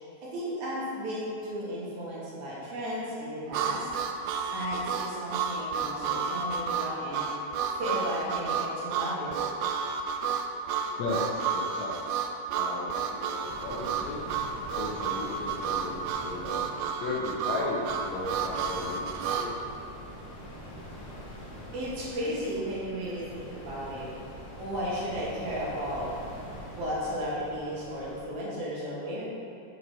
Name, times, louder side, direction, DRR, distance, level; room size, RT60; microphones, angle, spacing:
voice 1, 0.2-3.9 4.5-7.3 7.7-9.4 21.7-24.1 24.6-26.1 26.7-29.3, equal, 65° right, -6 dB, 2.5 m, -34 dB
Harmonica, 3.5-19.5, right 6 dB, 85° right, 1.7 m, -31 dB
voice 2, 11.0-12.0 12.6-14.2 14.8-15.9 16.2-16.6 17.0-19.5, left 2 dB, 70° left, -5 dB, 1.8 m, -35 dB
sound 1, 13.4-28.2, equal, 45° left, 1.4 m, -44 dB
7.5 x 4.8 x 4.9 m, 2.5 s
omnidirectional pair, 3.9 m